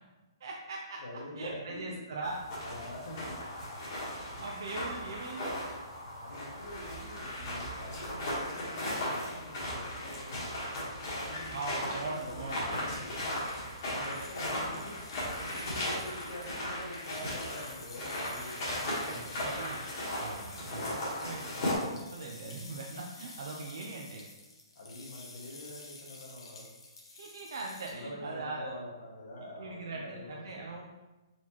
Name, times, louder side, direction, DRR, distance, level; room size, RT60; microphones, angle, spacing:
voice 1, 0.4-1.0 1.4-2.4 4.4-5.6 11.5-12.8 19.1-19.8 20.2-24.2 27.1-28.7 29.6-30.9, right 3 dB, 50° right, -1 dB, 0.5 m, -41 dB
voice 2, 1.0-1.9 2.6-3.2 6.2-10.6 11.1-13.1 13.8-19.5 24.7-26.6 27.9-30.6, left 1 dB, 55° left, -3 dB, 1.2 m, -45 dB
sound 1, 2.2-21.7, left 1 dB, 35° left, 1.3 m, -37 dB
sound 2, 11.3-27.9, left 3 dB, 85° left, 1.1 m, -51 dB
4.2 x 4.0 x 2.9 m, 1.1 s
hypercardioid pair, 175°, 3 cm